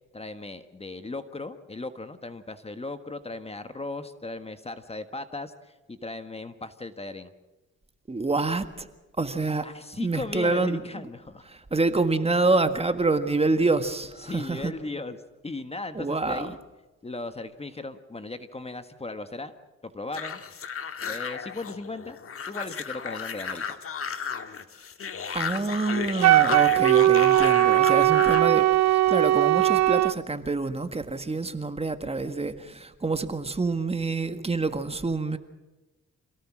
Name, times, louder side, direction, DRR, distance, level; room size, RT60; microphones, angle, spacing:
voice 1, 0.1-7.3 9.6-11.5 14.2-16.6 17.0-19.5 19.8-20.7 21.0-22.2 22.5-23.8, left 2 dB, 20° left, 1.5 m, -37 dB
voice 2, 8.1-8.9 9.2-9.6 10.0-10.8 11.5-14.7 15.9-16.5 25.3-35.4, right 3 dB, 20° right, 1.7 m, -27 dB
sound 1, 20.1-28.5, left 6 dB, 45° left, 1.8 m, -34 dB
Wind instrument woodwind instrument, 26.2-30.1, right 15 dB, 60° right, 0.7 m, -19 dB
27.0 x 18.0 x 6.3 m
cardioid pair, 90°, 30 cm